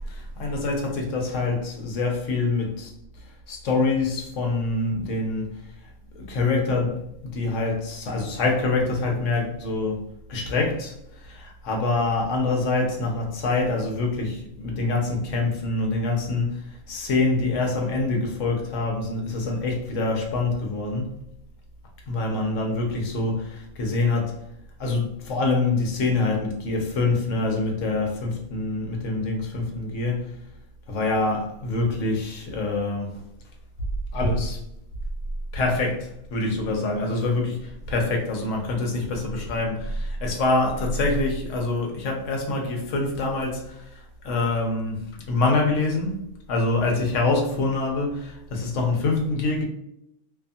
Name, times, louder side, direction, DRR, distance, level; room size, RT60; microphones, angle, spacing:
voice 1, 0.1-2.9 3.5-5.5 6.2-10.0 10.3-10.9 11.2-16.6 16.9-21.1 22.1-24.3 24.8-30.3 30.9-33.2 34.1-34.6 35.5-43.8 44.2-45.0 45.3-46.2 46.5-49.6, left 3 dB, 70° left, 1 dB, 1.0 m, -25 dB
2.7 x 2.5 x 2.3 m, 0.80 s
omnidirectional pair, 1.4 m